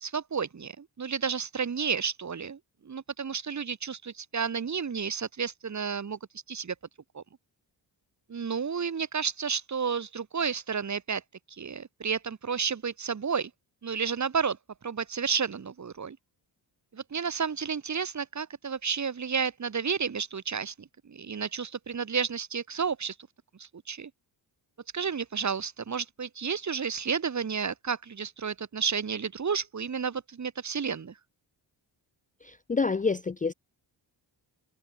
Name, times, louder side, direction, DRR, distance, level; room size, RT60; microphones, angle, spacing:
voice 1, 0.0-6.2 6.5-6.7 7.1-7.2 8.3-11.2 11.6-13.5 13.8-14.6 14.8-16.2 16.9-23.1 23.6-24.1 24.9-31.1, right 6 dB, 40° right, 1.6 m, -31 dB
voice 2, 32.4-33.5, left 4 dB, 20° left, 0.5 m, -28 dB
cardioid pair, 75°, 44 cm